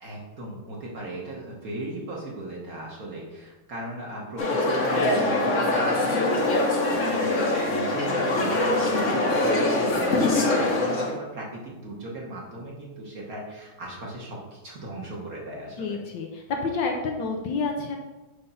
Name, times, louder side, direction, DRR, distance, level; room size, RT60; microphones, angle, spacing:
voice 1, 0.0-16.0, right 1 dB, 50° right, -3 dB, 1.4 m, -37 dB
sound 1, 4.4-11.1, left 2 dB, 45° left, 1.1 m, -23 dB
voice 2, 15.8-18.0, left 4 dB, 70° left, 2 dB, 1.3 m, -29 dB
6.7 x 3.5 x 5.5 m, 1.1 s
omnidirectional pair, 2.3 m